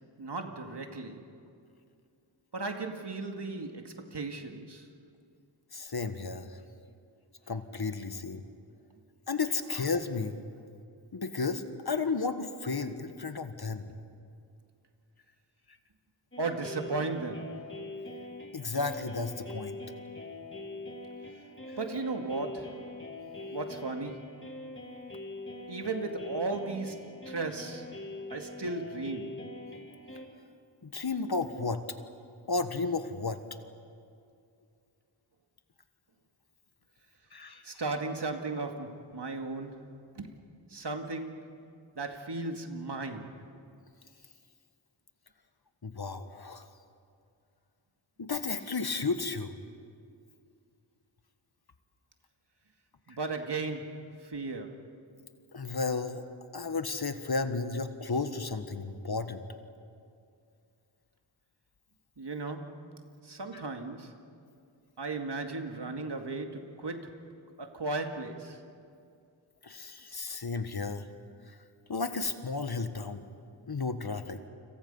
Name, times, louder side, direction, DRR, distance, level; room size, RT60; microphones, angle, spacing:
voice 1, 0.2-1.3 2.5-4.9 13.9-14.0 16.4-17.6 21.8-22.8 23.5-24.4 25.7-27.9 28.3-29.4 37.6-40.3 40.7-41.5 41.9-43.4 53.1-54.8 62.2-63.0 63.2-64.2 65.0-67.3 67.6-68.6, right 3 dB, 60° right, 2.2 m, -36 dB
voice 2, 5.7-6.6 7.5-8.4 9.3-10.4 11.1-13.9 18.5-19.8 30.8-31.8 32.5-33.4 37.3-37.6 45.8-46.7 48.2-49.5 53.1-53.2 55.5-56.2 56.5-59.4 63.5-63.6 69.6-71.0 71.5-71.6 71.9-73.2 73.7-74.4, left 4 dB, 55° left, 1.6 m, -33 dB
sound 1, 16.3-30.3, left 2 dB, 25° left, 3.3 m, -43 dB
30.0 x 26.5 x 5.6 m
wide cardioid pair, 65°, 46 cm